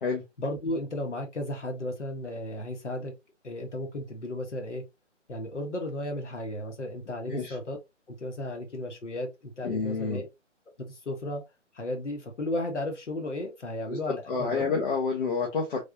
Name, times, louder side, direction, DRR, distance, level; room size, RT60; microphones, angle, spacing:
voice 1, 0.4-3.1 3.4-4.8 5.3-7.8 8.1-10.3 10.8-11.4 11.7-14.8, left 1 dB, 70° left, 1.6 m, -34 dB
voice 2, 9.6-10.2 13.9-15.8, left 4 dB, 45° left, 1.0 m, -29 dB
3.5 x 3.3 x 2.7 m
figure-of-eight pair, 145°, 37 cm